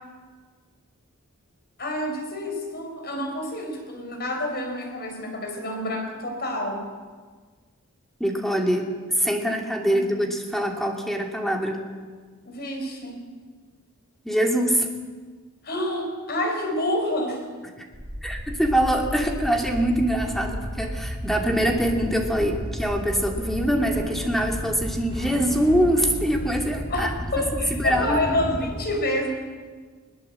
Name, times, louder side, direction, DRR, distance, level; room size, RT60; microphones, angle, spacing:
voice 1, 1.8-6.8 9.9-10.1 12.4-13.2 15.6-17.5 26.9-29.3, left 1 dB, 50° left, 3 dB, 4.8 m, -28 dB
voice 2, 8.2-11.8 14.2-14.9 18.2-28.7, equal, ahead, 1 dB, 2.7 m, -24 dB
sound 1, 17.9-28.6, equal, 20° right, 7.7 m, -33 dB
21.0 x 19.5 x 7.8 m, 1.5 s
head